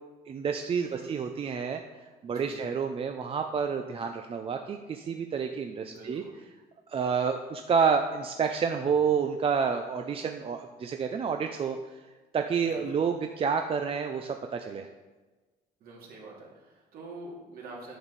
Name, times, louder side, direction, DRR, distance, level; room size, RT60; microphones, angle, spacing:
voice 1, 0.3-1.8 2.2-6.2 6.9-11.9 12.3-14.9, right 6 dB, 35° right, 5 dB, 0.5 m, -29 dB
voice 2, 0.8-1.2 2.2-2.7 5.8-6.4 12.6-13.1 15.8-18.0, right 2 dB, 60° right, -3 dB, 2.6 m, -46 dB
9.2 x 6.3 x 4.1 m, 1.3 s
cardioid pair, 110°, 17 cm